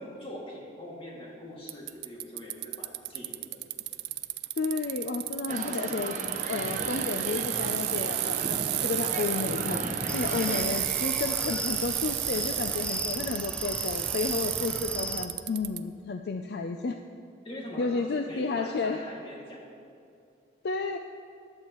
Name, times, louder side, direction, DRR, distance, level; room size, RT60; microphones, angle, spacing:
voice 1, 0.0-3.4 10.3-10.7 17.4-19.6, left 1 dB, 30° left, -4 dB, 2.2 m, -42 dB
Bicycle, 1.7-15.8, right 15 dB, 60° right, 0.4 m, -32 dB
voice 2, 4.6-6.2 6.4-8.4 8.8-9.8 10.1-17.0 17.8-19.0 20.6-21.0, left 4 dB, 60° left, 6 dB, 0.4 m, -32 dB
sound 1, 5.5-10.6, right 1 dB, 45° right, 1.0 m, -35 dB
sound 2, 10.1-15.3, left 1 dB, 5° left, 0.5 m, -37 dB
15.0 x 11.5 x 3.0 m, 2.4 s
head